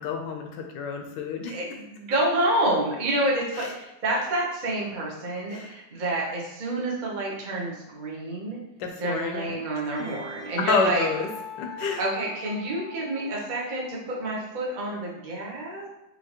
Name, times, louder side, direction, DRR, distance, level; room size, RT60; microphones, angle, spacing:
voice 1, 0.0-1.6 3.5-3.7 5.5-5.7 8.8-9.6 10.0-10.1 10.6-11.3 11.6-12.0, left 4 dB, 75° left, 3 dB, 1.1 m, -28 dB
voice 2, 1.5-8.6 9.0-11.1 12.0-15.9, right 1 dB, 50° right, -4 dB, 0.5 m, -28 dB
Wind instrument woodwind instrument, 9.9-14.0, left 2 dB, 65° right, 1.5 m, -42 dB
5.6 x 2.8 x 2.9 m, 0.92 s
omnidirectional pair, 2.2 m